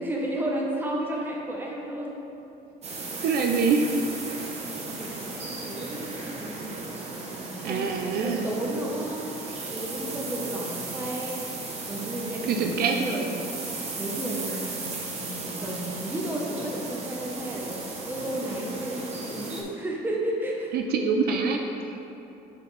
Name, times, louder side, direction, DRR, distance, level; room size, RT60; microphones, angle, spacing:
voice 1, 0.0-2.2 4.8-6.8 7.3-9.3 9.7-11.4 11.9-20.7, right 1 dB, 10° right, -2 dB, 1.0 m, -33 dB
sound 1, 2.8-19.6, right 3 dB, 40° right, 1.0 m, -36 dB
voice 2, 3.2-3.9 7.6-8.5 12.5-13.2 20.7-22.0, right 5 dB, 65° right, 3 dB, 0.5 m, -25 dB
8.0 x 4.1 x 3.3 m, 3.0 s
cardioid pair, 110°, 17 cm